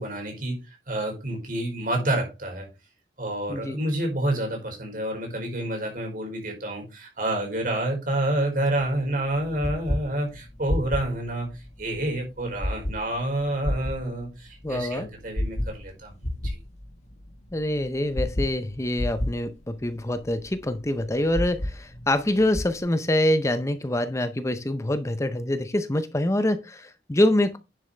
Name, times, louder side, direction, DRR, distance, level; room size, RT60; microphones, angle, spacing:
voice 1, 0.0-2.7 3.2-16.6, right 1 dB, 50° right, 4.9 m, -28 dB
voice 2, 3.5-3.8 14.6-15.1 17.5-27.6, left 1 dB, 15° left, 0.6 m, -25 dB
sound 1, 8.8-22.8, left 1 dB, 40° left, 1.3 m, -33 dB
10.0 x 7.2 x 3.3 m
head